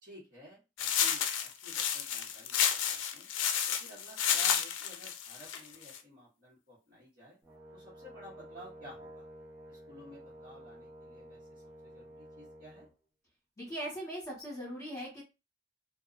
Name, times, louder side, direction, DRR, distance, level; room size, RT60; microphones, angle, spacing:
voice 1, 0.0-3.3 3.7-7.4 7.7-9.3 9.7-12.9, equal, 50° right, -9 dB, 1.3 m, -54 dB
sound 1, 0.8-6.0, left 8 dB, 90° left, 0.4 m, -31 dB
Brass instrument, 7.4-12.9, right 1 dB, 15° right, 0.6 m, -51 dB
voice 2, 13.6-15.2, equal, 15° left, -6 dB, 1.2 m, -40 dB
2.6 x 2.2 x 2.4 m, 0.27 s
head